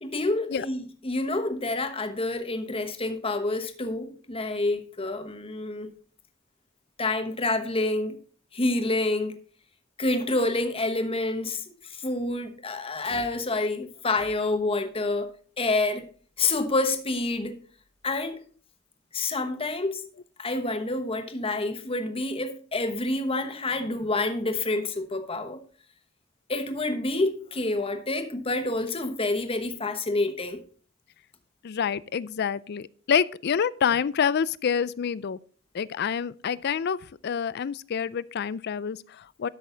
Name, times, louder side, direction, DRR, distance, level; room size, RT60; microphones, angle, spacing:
voice 1, 0.0-5.9 7.0-8.2 8.5-9.4 10.0-15.3 15.6-16.1 16.4-17.6 18.0-18.4 19.1-20.0 20.4-25.6 26.5-30.6, left 2 dB, 25° left, 1.1 m, -28 dB
voice 2, 31.6-35.4 35.7-39.5, left 7 dB, 50° left, 0.4 m, -27 dB
12.5 x 6.3 x 3.9 m
head